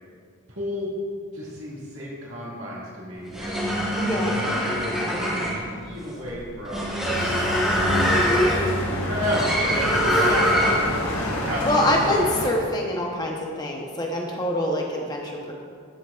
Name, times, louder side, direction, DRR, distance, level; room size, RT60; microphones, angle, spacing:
voice 1, 0.5-0.9 1.3-4.0 4.4-6.9 7.2-11.1 11.5-12.0, equal, 65° right, -7 dB, 2.1 m, -33 dB
sound 1, 3.2-11.0, equal, 5° right, 1.2 m, -23 dB
voice 2, 4.0-4.4 10.1-10.6 11.6-15.5, left 1 dB, 20° left, 0 dB, 0.9 m, -25 dB
sound 2, 7.0-12.5, left 1 dB, 70° left, 1.3 m, -28 dB
13.5 x 6.0 x 2.5 m, 2.1 s
head